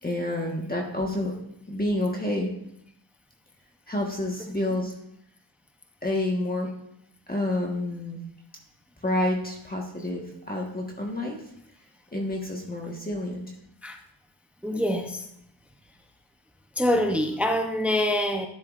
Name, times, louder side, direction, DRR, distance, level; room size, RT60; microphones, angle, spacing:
voice 1, 0.0-1.3 1.7-2.5 3.9-4.9 6.0-6.7 7.3-8.2 9.0-11.4 12.1-13.5, left 1 dB, 20° left, -1 dB, 1.4 m, -29 dB
voice 2, 14.6-15.3 16.8-18.5, left 1 dB, 5° right, 4 dB, 0.7 m, -25 dB
12.0 x 10.5 x 2.5 m, 0.74 s
wide cardioid pair, 115°, 45 cm